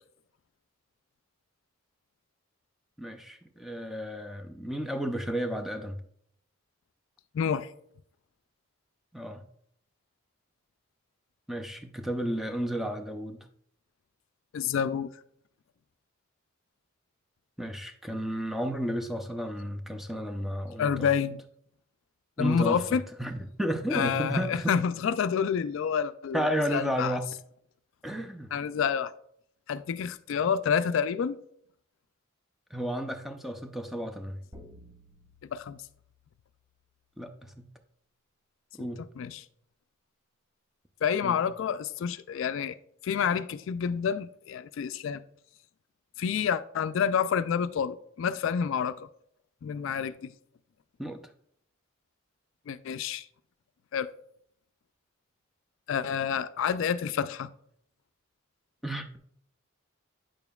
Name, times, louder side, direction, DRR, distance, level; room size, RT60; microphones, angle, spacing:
voice 1, 3.0-6.0 9.1-9.4 11.5-13.5 17.6-21.1 22.4-24.7 26.3-27.3 28.0-28.5 32.7-34.4 37.2-37.7 38.8-39.0 41.2-41.4 51.0-51.2 58.8-59.2, equal, ahead, 0.5 m, -32 dB
voice 2, 7.3-7.7 14.5-15.1 20.8-21.4 22.4-23.0 23.9-27.1 28.5-29.1 29.7-31.4 35.5-35.8 39.2-39.4 41.0-42.8 43.0-45.2 46.2-49.1 49.6-50.3 52.7-53.3 53.9-54.1 55.9-57.5, left 7 dB, 60° left, 0.3 m, -28 dB
sound 1, 34.5-37.0, equal, 15° right, 0.9 m, -54 dB
8.8 x 6.9 x 2.3 m
head